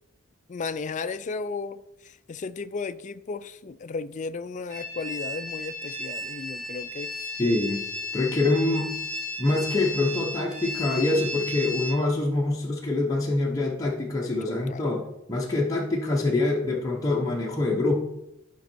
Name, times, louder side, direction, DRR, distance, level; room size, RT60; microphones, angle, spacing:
voice 1, 0.5-7.1 14.5-14.8, left 4 dB, 35° left, 0.4 m, -34 dB
sound 1, 4.7-11.9, left 2 dB, 75° right, 3.8 m, -34 dB
voice 2, 7.4-7.8 8.1-8.9 9.4-15.0 15.3-18.0, left 2 dB, 15° left, 0.9 m, -25 dB
11.5 x 5.4 x 4.4 m
head